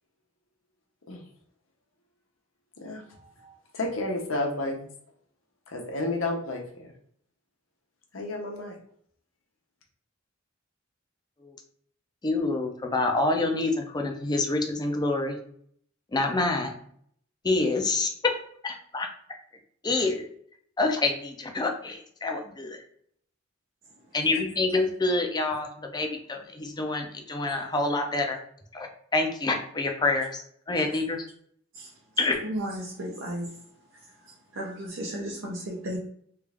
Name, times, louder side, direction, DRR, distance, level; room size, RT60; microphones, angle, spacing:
voice 1, 2.8-4.9 5.7-6.9 8.1-8.8, left 2 dB, 90° left, 1 dB, 0.9 m, -32 dB
voice 2, 12.2-15.4 16.1-16.7 17.4-18.3 18.6-19.1 19.8-20.2 20.8-22.8 24.1-28.4 28.7-28.9 29.1-30.4 30.7-31.3 32.2-32.4, left 2 dB, 20° left, 4 dB, 0.5 m, -27 dB
voice 3, 32.4-33.6 33.9-36.0, right 1 dB, 70° right, -4 dB, 0.7 m, -35 dB
3.3 x 2.4 x 3.3 m, 0.63 s
head